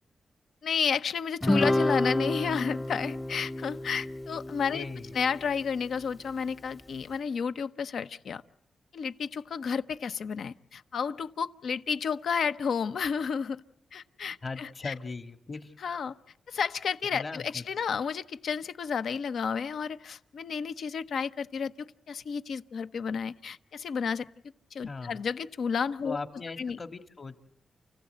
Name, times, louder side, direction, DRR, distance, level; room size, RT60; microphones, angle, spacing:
voice 1, 0.6-4.8 5.1-8.4 8.9-13.6 13.9-14.9 15.8-16.1 16.5-24.3 24.7-26.2 26.6-26.8, left 6 dB, 80° left, 11 dB, 0.8 m, -31 dB
Guitar, 1.4-6.0, left 1 dB, 10° left, 0.8 m, -30 dB
voice 2, 4.7-5.2 14.4-15.7 17.1-17.7 24.9-25.2 26.0-27.4, left 3 dB, 45° left, 8 dB, 1.8 m, -39 dB
29.5 x 15.5 x 8.0 m, 0.81 s
cardioid pair, 70°, 0 cm